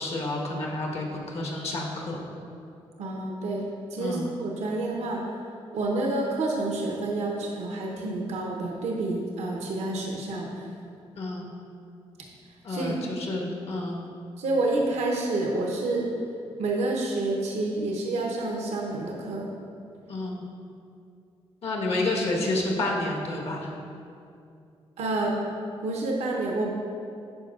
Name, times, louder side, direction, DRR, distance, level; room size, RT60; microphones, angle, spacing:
voice 1, 0.0-2.2 4.0-4.3 11.2-11.5 12.6-14.0 20.1-20.4 21.6-23.7, left 2 dB, 70° left, -1 dB, 1.3 m, -29 dB
voice 2, 3.0-3.6 3.9-5.2 5.7-10.7 12.7-13.0 14.4-16.1 16.6-19.5 25.0-25.3 25.8-26.7, right 2 dB, 85° right, -1 dB, 0.8 m, -28 dB
11.5 x 4.4 x 2.4 m, 2.5 s
cardioid pair, 70°, 11 cm